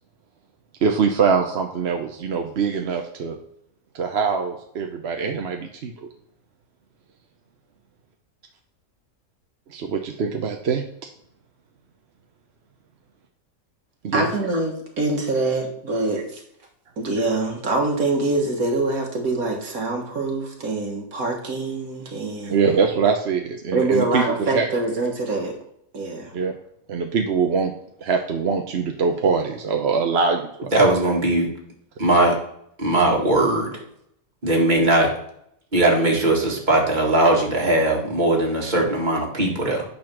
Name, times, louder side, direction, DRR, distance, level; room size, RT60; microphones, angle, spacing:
voice 1, 0.8-3.4 3.9-5.9 9.7-10.8 14.0-14.3 22.5-24.7 26.3-26.5 26.9-27.7 28.0-30.7, right 5 dB, 55° right, 3 dB, 0.9 m, -23 dB
voice 2, 14.1-16.4 17.0-22.7 23.7-25.6 25.9-26.3, right 2 dB, 75° right, 2 dB, 1.9 m, -24 dB
voice 3, 30.7-31.5 32.0-32.4 32.8-33.7 34.4-35.1 35.7-39.8, right 2 dB, 30° right, -1 dB, 2.0 m, -19 dB
9.1 x 4.2 x 6.0 m, 0.73 s
omnidirectional pair, 1.5 m